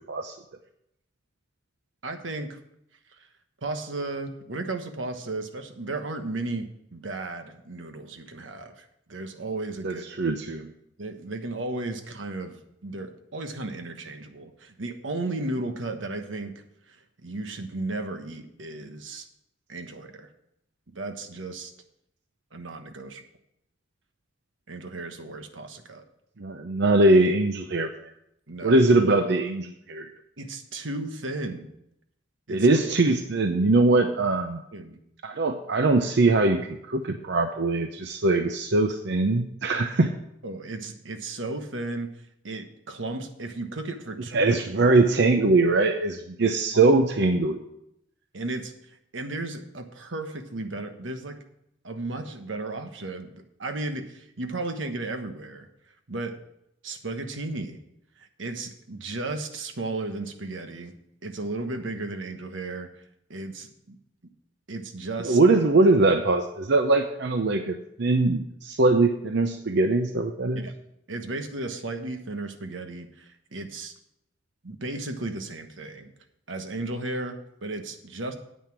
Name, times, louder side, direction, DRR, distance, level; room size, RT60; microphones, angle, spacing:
voice 1, 2.0-2.6 3.6-10.0 11.0-16.5 16.9-19.3 19.7-20.3 20.9-21.7 22.5-23.2 24.7-26.0 28.5-28.8 30.4-31.7 32.5-32.7 34.7-35.0 40.4-42.1 42.4-44.4 46.7-46.9 48.3-51.4 51.8-55.7 56.1-56.4 56.8-57.8 58.2-60.9 61.2-63.0 63.3-64.0 64.7-65.4 70.6-70.7 71.1-73.9 74.6-76.1 76.5-78.3, right 2 dB, 85° right, 7 dB, 1.2 m, -34 dB
voice 2, 9.8-10.7 26.4-28.1 28.6-30.1 32.5-34.6 35.2-40.1 44.3-47.6 65.2-70.6, right 2 dB, 65° right, 6 dB, 0.7 m, -22 dB
9.4 x 8.5 x 5.9 m, 0.78 s
head